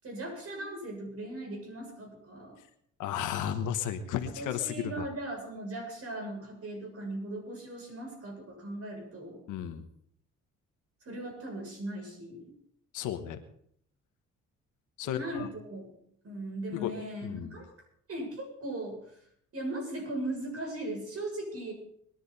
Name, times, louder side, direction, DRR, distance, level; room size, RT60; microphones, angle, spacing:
voice 1, 0.0-2.6 4.2-9.4 11.0-12.5 15.1-16.0 16.2-17.7 18.1-19.0 19.5-21.7, right 1 dB, 50° right, 1 dB, 7.4 m, -38 dB
voice 2, 3.0-5.1 9.5-9.9 12.9-13.4 15.0-15.5 16.7-16.9 17.2-17.5, left 10 dB, 90° left, 7 dB, 1.3 m, -33 dB
22.0 x 11.0 x 4.1 m, 0.66 s
cardioid pair, 90°, 30 cm